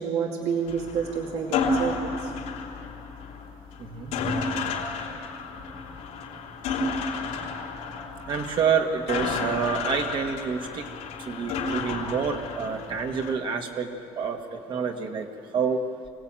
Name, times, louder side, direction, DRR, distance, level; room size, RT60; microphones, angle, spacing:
voice 1, 0.0-2.3, right 6 dB, 70° right, 0 dB, 2.4 m, -29 dB
sound 1, 0.7-13.4, left 4 dB, 90° left, 3.4 m, -32 dB
voice 2, 3.8-4.2 8.3-10.8 11.3-13.9 14.2-15.3 15.5-15.8, right 6 dB, 45° right, 4 dB, 1.7 m, -28 dB
24.0 x 17.5 x 9.0 m, 2.4 s
cardioid pair, 165°, 12 cm